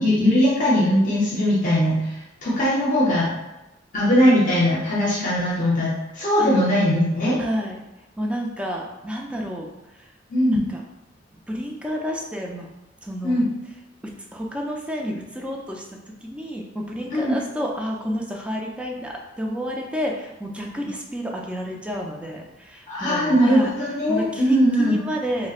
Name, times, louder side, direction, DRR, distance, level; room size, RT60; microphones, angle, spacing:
voice 1, 0.0-3.3 3.9-7.4 10.3-10.6 13.2-13.4 17.1-17.3 22.9-24.9, equal, 45° left, -7 dB, 0.7 m, -20 dB
voice 2, 6.4-6.7 7.4-7.9 8.2-9.7 10.0-10.1 10.5-10.8 11.3-12.7 13.0-13.5 14.3-15.8 16.2-23.7 24.1-25.5, equal, 5° right, -1 dB, 0.4 m, -30 dB
3.1 x 3.0 x 2.4 m, 0.97 s
head